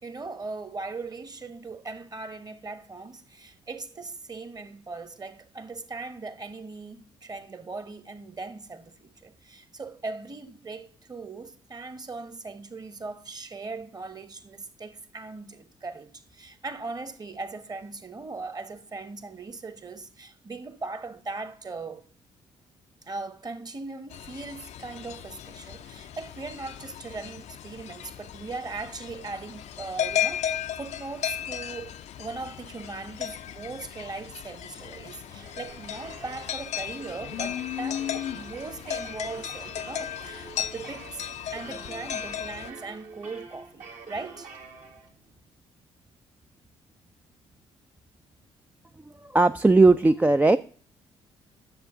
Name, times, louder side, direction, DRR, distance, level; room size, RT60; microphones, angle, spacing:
voice 1, 0.0-22.0 23.0-44.5, right 3 dB, 25° right, 1.2 m, -39 dB
sound 1, 24.1-42.7, left 10 dB, 50° left, 0.5 m, -35 dB
sound 2, 34.9-45.4, right 4 dB, 55° right, 1.6 m, -47 dB
voice 2, 49.2-50.6, right 3 dB, 10° right, 0.4 m, -18 dB
9.9 x 7.2 x 3.8 m
figure-of-eight pair, 40°, 14 cm